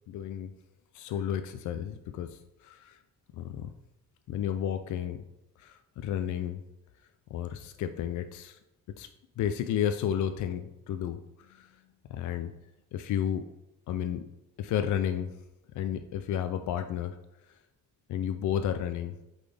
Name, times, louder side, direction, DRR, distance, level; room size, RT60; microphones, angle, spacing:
voice 1, 0.1-0.5 0.9-3.0 3.4-3.7 4.3-5.2 5.6-6.6 7.3-8.6 9.0-9.1 9.4-11.7 12.1-12.5 12.9-13.5 13.9-14.3 14.6-15.4 15.7-17.2 18.1-19.1, left 9 dB, 75° left, 9 dB, 0.5 m, -32 dB
8.4 x 4.1 x 3.4 m, 0.93 s
cardioid pair, 90°, 30 cm